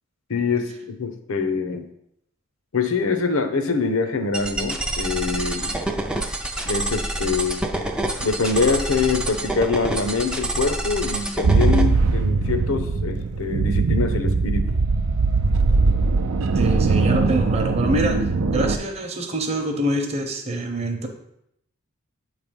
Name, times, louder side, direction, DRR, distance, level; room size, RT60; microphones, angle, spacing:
voice 1, 0.3-1.9 2.7-5.8 6.6-7.6 8.2-14.8, left 4 dB, 75° left, 8 dB, 0.7 m, -24 dB
sound 1, 4.3-11.8, right 1 dB, 5° right, 0.4 m, -27 dB
sound 2, 11.4-18.8, right 3 dB, 80° right, 0.5 m, -20 dB
voice 2, 16.6-21.1, right 1 dB, 30° right, 3 dB, 0.8 m, -25 dB
7.8 x 3.3 x 5.2 m, 0.77 s
head